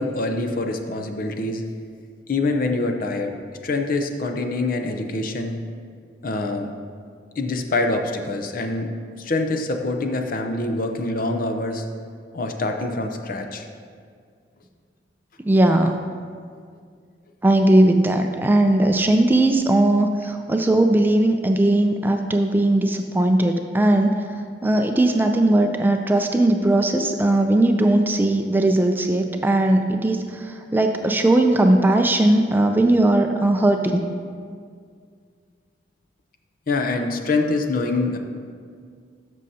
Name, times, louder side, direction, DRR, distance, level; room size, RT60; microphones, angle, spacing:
voice 1, 0.0-1.6 2.3-3.3 3.6-5.6 6.2-6.7 7.4-8.9 9.2-11.8 12.3-13.6 36.7-38.2, left 2 dB, 50° left, 5 dB, 0.6 m, -25 dB
voice 2, 15.5-15.9 17.4-24.2 24.6-34.0, right 1 dB, 10° right, 4 dB, 0.3 m, -18 dB
13.0 x 6.3 x 2.8 m, 2.1 s
head